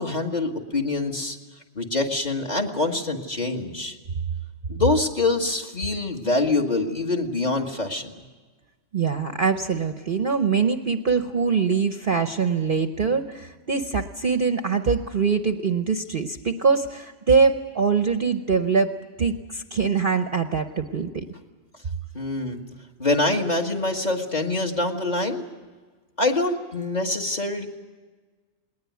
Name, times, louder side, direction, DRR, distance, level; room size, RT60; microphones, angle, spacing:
voice 1, 0.0-1.4 1.7-4.0 4.7-8.2 22.1-22.6 23.0-25.5 26.2-27.7, left 2 dB, 30° left, 2 dB, 1.7 m, -25 dB
voice 2, 8.9-18.9 19.2-21.2, right 5 dB, 45° right, 8 dB, 0.8 m, -23 dB
20.0 x 19.5 x 9.3 m, 1.4 s
omnidirectional pair, 1.5 m